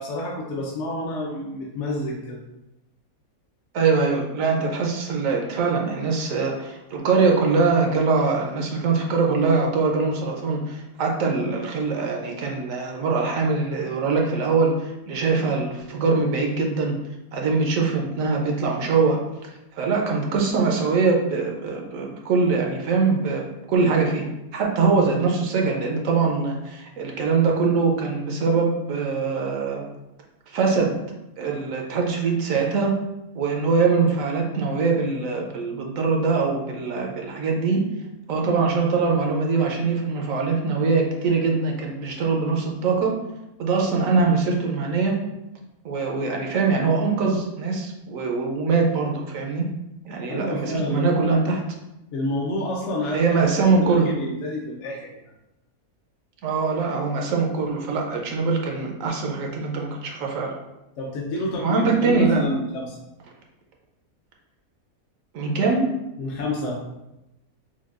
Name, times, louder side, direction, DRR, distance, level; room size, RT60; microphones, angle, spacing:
voice 1, 0.0-2.4 50.3-51.4 52.1-53.4 53.7-55.2 61.0-63.0 66.2-66.8, left 1 dB, 65° left, -3 dB, 0.9 m, -29 dB
voice 2, 3.7-17.0 17.3-24.3 24.5-29.8 30.5-31.0 31.4-32.9 33.3-37.8 38.3-43.1 43.6-45.2 45.8-49.7 50.0-51.6 53.1-54.1 56.4-60.5 61.6-62.4 65.3-65.9, right 4 dB, 70° right, 1 dB, 1.0 m, -23 dB
5.9 x 2.3 x 2.4 m, 0.92 s
omnidirectional pair, 1.5 m